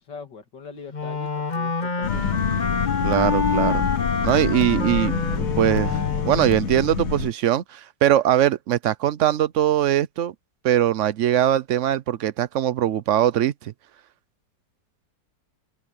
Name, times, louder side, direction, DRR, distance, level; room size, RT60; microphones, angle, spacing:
voice 1, 0.0-2.3, left 5 dB, 80° left, 3.0 m, -42 dB
Wind instrument woodwind instrument, 0.9-6.7, left 4 dB, 30° left, 1.0 m, -27 dB
sound 1, 2.0-7.3, left 7 dB, 55° left, 1.4 m, -27 dB
voice 2, 3.0-3.8 4.2-6.0 6.3-10.3 10.6-13.7, right 11 dB, 65° right, 0.8 m, -21 dB
open air
omnidirectional pair, 1.9 m